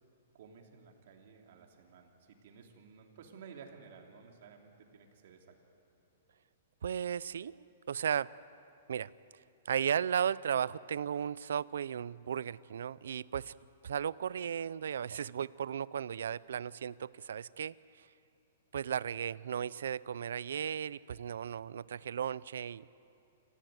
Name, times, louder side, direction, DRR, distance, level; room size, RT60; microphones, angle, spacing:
voice 1, 0.3-5.6, right 6 dB, 55° right, 2 dB, 3.0 m, -54 dB
voice 2, 6.8-8.3 8.9-9.1 9.7-13.5 13.8-18.1 18.7-22.8, right 8 dB, 80° right, 20 dB, 0.5 m, -35 dB
27.0 x 15.0 x 9.5 m, 2.6 s
hypercardioid pair, 165°, 0 cm